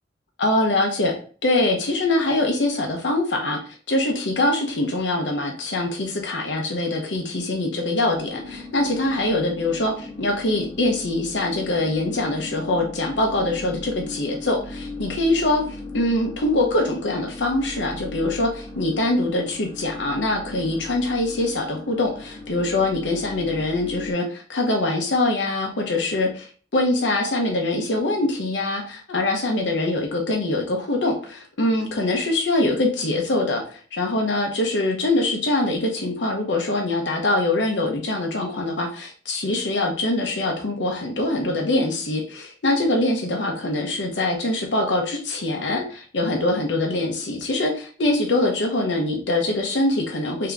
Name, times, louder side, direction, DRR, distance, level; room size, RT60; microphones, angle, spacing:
voice 1, 0.4-1.1 1.4-3.6 3.9-50.5, left 2 dB, 85° left, 1 dB, 0.8 m, -23 dB
sound 1, 8.1-24.1, left 2 dB, 15° left, 1.3 m, -38 dB
3.4 x 2.9 x 3.6 m, 0.40 s
head